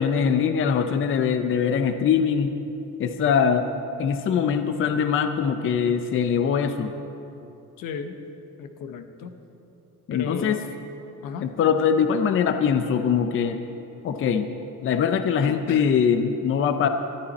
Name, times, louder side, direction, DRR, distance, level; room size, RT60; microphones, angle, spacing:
voice 1, 0.0-2.5 3.0-3.7 4.0-6.9 10.1-10.6 11.4-13.6 14.0-14.5 14.8-16.9, left 7 dB, 40° left, 7 dB, 0.6 m, -22 dB
voice 2, 7.8-8.2 8.6-9.3 10.1-10.6 11.2-11.5 15.4-15.9, left 6 dB, 80° left, 8 dB, 1.2 m, -34 dB
21.5 x 13.0 x 4.2 m, 3.0 s
cardioid pair, 175°, 32 cm